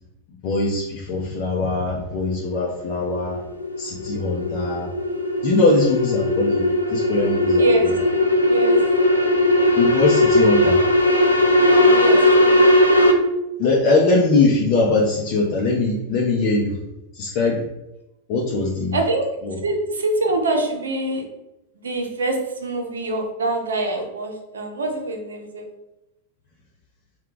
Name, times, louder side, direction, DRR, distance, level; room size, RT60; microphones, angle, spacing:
voice 1, 0.4-3.4 3.8-4.9 5.4-6.6 6.9-8.0 9.8-10.8 13.6-16.8 17.1-17.6 18.3-19.0 19.4-19.6, left 3 dB, 40° left, -4 dB, 0.6 m, -21 dB
sound 1, 2.6-13.1, left 1 dB, 80° left, 0.4 m, -18 dB
voice 2, 7.5-8.0 8.5-8.8 11.7-12.6 18.9-19.3 19.6-21.2 21.8-25.7, right 2 dB, 70° right, 3 dB, 0.7 m, -25 dB
3.3 x 2.3 x 3.8 m, 0.93 s
figure-of-eight pair, 90°, 0 cm